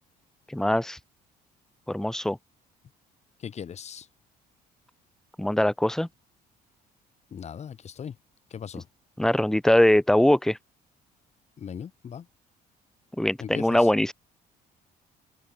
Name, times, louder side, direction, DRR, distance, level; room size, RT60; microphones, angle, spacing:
voice 1, 0.5-1.0 1.9-2.4 5.4-6.1 9.2-10.6 13.2-14.1, left 1 dB, 5° left, 0.6 m, -22 dB
voice 2, 3.4-4.1 7.3-8.1 8.5-8.9 11.6-12.3 13.4-13.9, left 8 dB, 40° left, 2.1 m, -38 dB
cardioid pair, 110°, 17 cm